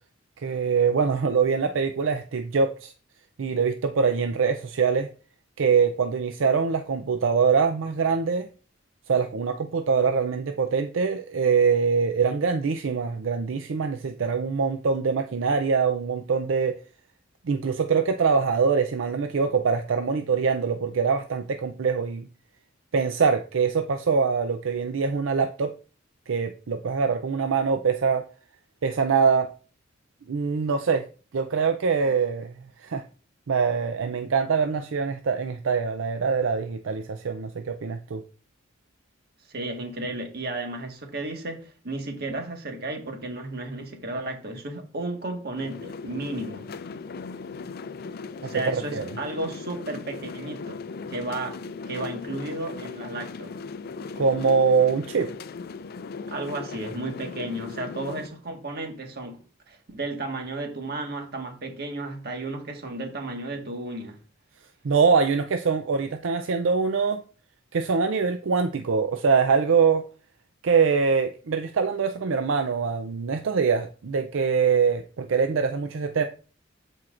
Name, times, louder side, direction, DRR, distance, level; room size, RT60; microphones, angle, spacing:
voice 1, 0.4-2.9 3.4-5.1 5.6-8.5 9.1-16.8 17.5-22.3 22.9-25.7 26.3-28.2 28.8-29.5 30.3-31.1 31.3-32.5 32.8-33.0 33.5-38.2 48.9-49.0 54.2-55.3 64.8-67.2 67.7-70.1 70.6-76.2, right 5 dB, 75° right, 0.5 m, -23 dB
voice 2, 39.5-46.7 48.4-50.8 51.1-51.6 51.9-53.5 56.3-59.4 59.7-64.2, right 2 dB, 50° right, 1.6 m, -33 dB
sound 1, 45.6-58.3, left 4 dB, 50° left, 0.4 m, -38 dB
13.5 x 4.6 x 2.5 m
head